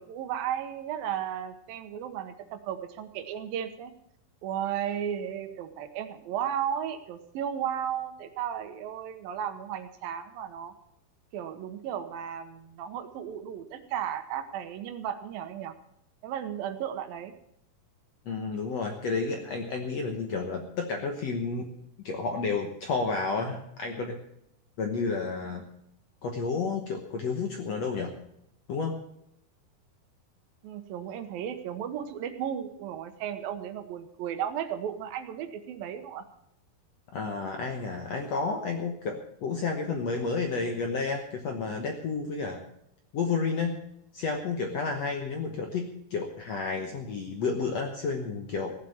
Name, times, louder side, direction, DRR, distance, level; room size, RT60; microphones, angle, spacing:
voice 1, 0.0-3.9 4.4-10.7 11.3-15.7 16.2-17.3 30.6-36.3, right 9 dB, 75° right, 9 dB, 2.6 m, -34 dB
voice 2, 18.2-21.7 22.0-24.2 24.8-25.6 26.2-28.1 28.7-29.0 37.1-42.6 43.1-43.8 44.1-48.7, left 4 dB, 70° left, 3 dB, 1.6 m, -31 dB
16.0 x 7.5 x 8.6 m, 0.77 s
omnidirectional pair, 4.7 m